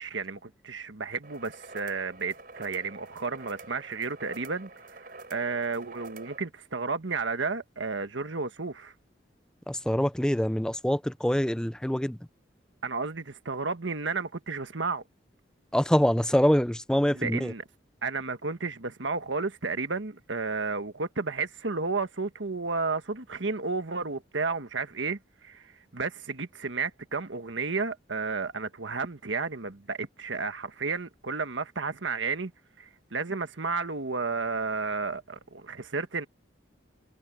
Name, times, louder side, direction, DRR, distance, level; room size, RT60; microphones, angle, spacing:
voice 1, 0.0-8.9 12.8-15.0 17.1-17.6 18.0-32.5 32.8-36.3, right 4 dB, 85° right, 1.4 m, -32 dB
sound 1, 1.2-6.4, right 3 dB, 50° right, 5.7 m, -47 dB
voice 2, 9.7-12.2 15.7-17.5, equal, 5° left, 0.5 m, -25 dB
head